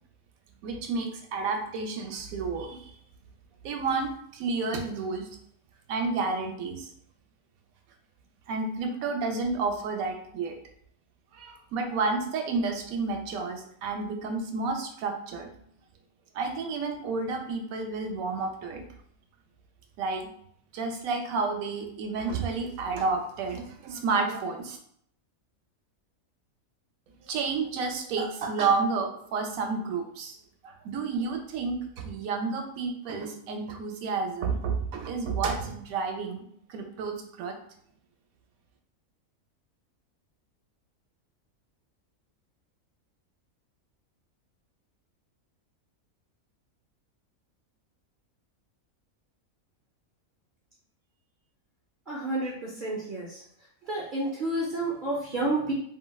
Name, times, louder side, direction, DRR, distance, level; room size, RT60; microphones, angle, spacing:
voice 1, 0.6-3.0 3.6-5.3 5.9-6.9 8.5-10.5 11.3-15.5 16.3-18.8 20.0-20.3 20.7-24.8 27.3-30.4 30.6-36.4 36.7-37.5, right 4 dB, 80° right, 4 dB, 1.0 m, -30 dB
voice 2, 52.1-53.4 53.9-55.7, right 2 dB, 55° right, -4 dB, 0.5 m, -30 dB
3.1 x 2.7 x 2.2 m, 0.67 s
omnidirectional pair, 1.5 m